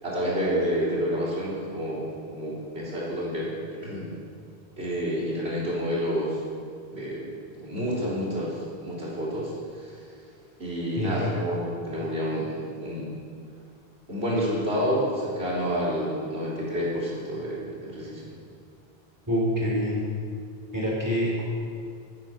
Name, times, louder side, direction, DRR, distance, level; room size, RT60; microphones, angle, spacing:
voice 1, 0.0-4.1 4.8-6.4 6.9-9.9 10.6-13.1 14.1-18.3, equal, 85° right, -7 dB, 4.1 m, -29 dB
voice 2, 11.0-11.3 19.3-20.0 20.7-21.4, equal, 20° right, -6 dB, 4.0 m, -26 dB
19.0 x 9.1 x 6.0 m, 2.2 s
omnidirectional pair, 1.1 m